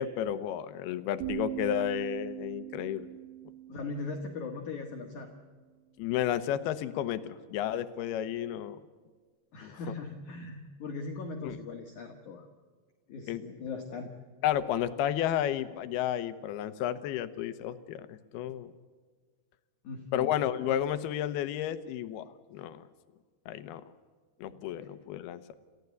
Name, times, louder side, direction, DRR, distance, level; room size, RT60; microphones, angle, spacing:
voice 1, 0.0-3.1 6.0-8.8 9.6-9.8 11.4-11.6 13.3-13.4 14.4-18.7 20.1-22.9 23.5-23.8 24.4-25.5, left 11 dB, 75° left, 12 dB, 2.6 m, -32 dB
sound 1, 1.2-5.1, right 14 dB, 55° right, 3.5 m, -41 dB
voice 2, 3.7-5.3 9.5-12.5 13.1-14.1 19.8-20.4 24.5-24.6, left 3 dB, 55° left, 3 dB, 2.3 m, -39 dB
28.5 x 15.0 x 8.2 m, 1.5 s
omnidirectional pair, 5.2 m